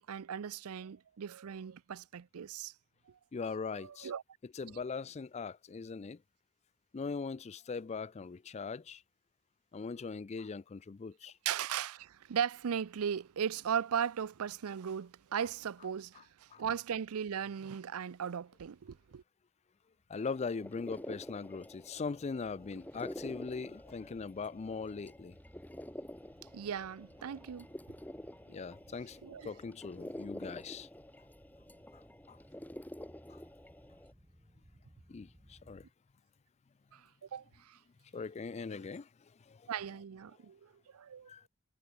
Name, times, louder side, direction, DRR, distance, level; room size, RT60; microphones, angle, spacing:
voice 1, 0.0-2.7 3.1-3.2 3.5-4.2 11.4-19.2 26.5-27.7 29.2-29.5 36.9-37.8 38.7-38.8 39.7-41.3, right 8 dB, 75° right, 0.5 m, -38 dB
voice 2, 3.3-4.1 4.5-6.2 6.9-9.0 9.7-11.3 16.5-16.6 20.1-25.4 28.5-30.9 32.3-32.4 35.1-35.8 38.1-39.1 39.5-39.6 41.3-41.4, left 4 dB, 30° left, 0.4 m, -40 dB
sound 1, 20.2-34.1, left 1 dB, 10° left, 1.7 m, -48 dB
sound 2, 21.6-35.9, equal, 15° right, 5.7 m, -62 dB
head